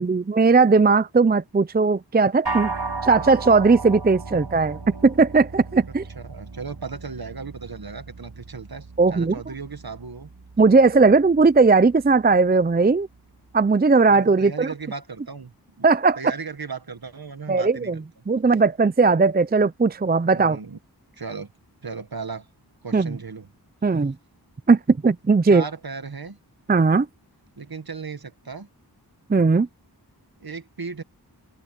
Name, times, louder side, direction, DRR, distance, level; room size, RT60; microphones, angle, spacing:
voice 1, 0.0-2.7 3.0-6.0 9.0-9.4 10.6-13.1 13.5-14.7 15.8-16.2 17.5-18.0 18.3-20.6 22.9-23.2 23.8-24.1 24.7-25.6 26.7-27.1 29.3-29.7, right 4 dB, 25° right, 0.5 m, -18 dB
sound 1, 2.5-12.0, right 3 dB, 80° right, 6.2 m, -35 dB
voice 2, 6.2-10.3 14.1-15.5 15.8-15.9 16.2-18.0 20.3-20.8 21.1-21.5 21.8-22.5 22.8-23.5 25.5-26.4 27.6-28.7 30.4-31.0, right 5 dB, 60° right, 1.7 m, -36 dB
open air
wide cardioid pair, 50°, 40 cm